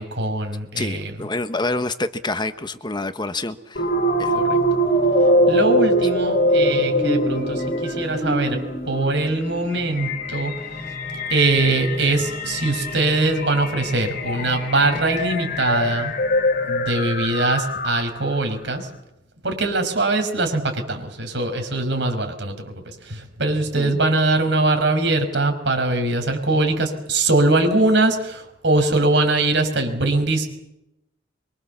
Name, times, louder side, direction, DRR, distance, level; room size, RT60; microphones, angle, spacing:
voice 1, 0.0-1.2 4.3-4.6 5.5-8.6 8.8-10.5 11.3-16.1 16.7-18.9 19.4-30.5, right 2 dB, 65° right, 5 dB, 5.8 m, -22 dB
voice 2, 0.8-3.8 4.2-4.4 23.8-24.0, left 2 dB, 25° left, 10 dB, 1.2 m, -27 dB
sound 1, 3.8-18.3, equal, 50° left, 5.1 m, -23 dB
25.0 x 24.5 x 7.3 m, 0.86 s
head